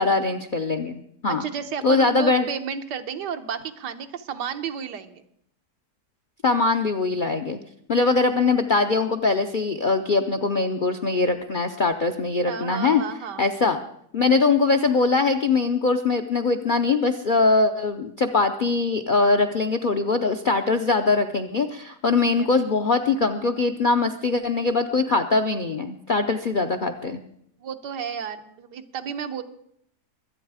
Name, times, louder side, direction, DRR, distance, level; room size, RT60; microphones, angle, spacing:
voice 1, 0.0-1.4 1.8-2.5 6.4-7.6 7.9-13.0 13.4-13.8 14.1-27.2, left 3 dB, 65° left, 6 dB, 0.5 m, -22 dB
voice 2, 1.3-5.2 12.4-13.5 22.4-22.5 27.6-29.4, right 7 dB, 90° right, 8 dB, 1.6 m, -32 dB
23.0 x 8.8 x 4.8 m, 0.72 s
omnidirectional pair, 1.8 m